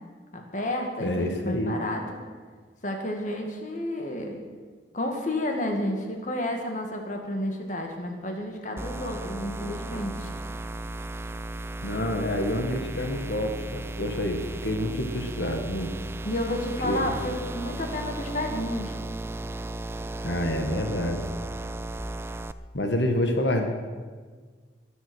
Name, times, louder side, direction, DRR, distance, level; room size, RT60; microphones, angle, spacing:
voice 1, 0.3-2.0 2.8-4.4 4.9-10.3 16.3-19.0, left 1 dB, 45° left, 3 dB, 2.0 m, -31 dB
voice 2, 1.0-1.7 11.8-15.9 16.8-17.2 20.2-21.2 22.7-23.7, left 1 dB, 80° left, 4 dB, 1.6 m, -28 dB
sound 1, 8.8-22.5, right 2 dB, 15° right, 0.4 m, -35 dB
22.0 x 8.2 x 6.3 m, 1.5 s
head